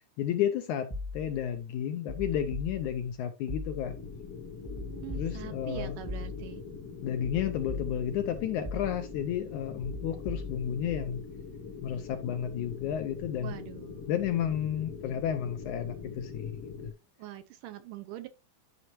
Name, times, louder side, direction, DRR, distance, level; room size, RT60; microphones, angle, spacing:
voice 1, 0.2-0.9 1.1-3.9 5.1-6.0 7.0-11.2 11.8-13.6 14.1-16.6, left 9 dB, 75° left, 1.8 m, -32 dB
sound 1, 0.9-1.5 2.1-3.1 3.5-4.1 4.6-6.7 7.2-8.3 8.6-9.3 9.8-11.2, left 3 dB, 15° left, 1.0 m, -40 dB
sound 2, 3.8-16.9, left 5 dB, 55° left, 1.6 m, -43 dB
voice 2, 4.7-6.6 13.4-14.1 17.2-18.3, right 13 dB, 75° right, 2.1 m, -43 dB
11.0 x 5.6 x 3.0 m
omnidirectional pair, 4.1 m